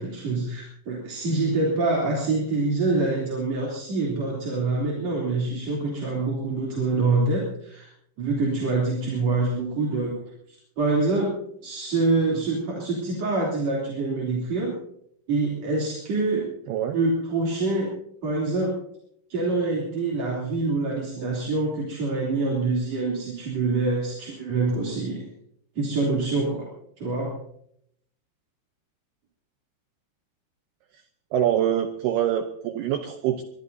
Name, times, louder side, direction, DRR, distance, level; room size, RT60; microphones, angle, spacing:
voice 1, 0.0-7.9 8.2-10.2 10.5-11.3 11.6-14.7 15.3-16.4 16.9-17.9 18.2-18.7 19.3-25.3 25.8-26.7 27.0-27.4, right 3 dB, 35° right, -4 dB, 3.8 m, -25 dB
voice 2, 31.3-33.4, right 10 dB, 85° right, 7 dB, 2.3 m, -24 dB
23.0 x 21.5 x 2.8 m, 0.72 s
omnidirectional pair, 5.7 m